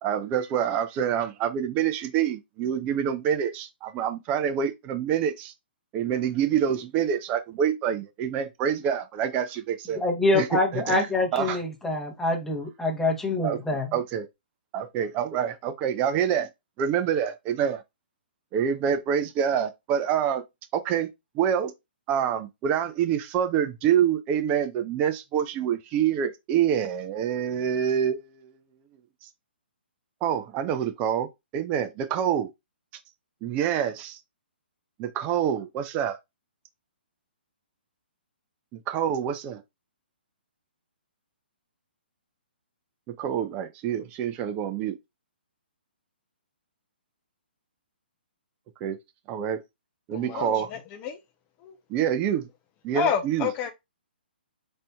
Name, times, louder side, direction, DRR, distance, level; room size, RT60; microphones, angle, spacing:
voice 1, 0.0-5.5 5.9-10.0 10.3-11.6 13.4-14.3 14.7-16.5 16.8-17.8 18.5-20.4 20.7-21.1 21.3-21.7 22.1-28.5 30.2-31.3 31.5-32.5 33.4-34.2 35.0-36.2 38.9-39.6 43.1-44.9 48.8-49.0 49.3-49.6 50.1-50.7 51.9-52.4 52.8-53.5, right 9 dB, 25° right, 0.4 m, -26 dB
voice 2, 10.0-13.9, left 2 dB, 5° left, 0.9 m, -25 dB
voice 3, 50.1-51.2 51.6-51.7 52.9-53.7, left 8 dB, 25° left, 0.5 m, -29 dB
4.2 x 2.7 x 2.2 m
hypercardioid pair, 135°, 6 cm